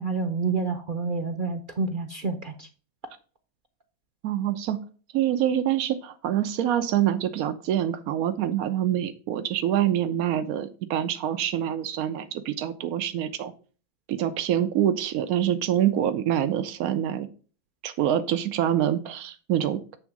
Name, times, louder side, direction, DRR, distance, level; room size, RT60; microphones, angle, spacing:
voice 1, 0.0-2.7, right 4 dB, 50° right, 7 dB, 0.7 m, -28 dB
voice 2, 4.2-4.8 5.1-13.5 14.1-17.3 17.8-19.8, right 11 dB, 90° right, 9 dB, 1.1 m, -25 dB
8.1 x 3.5 x 5.9 m, 0.39 s
omnidirectional pair, 1.5 m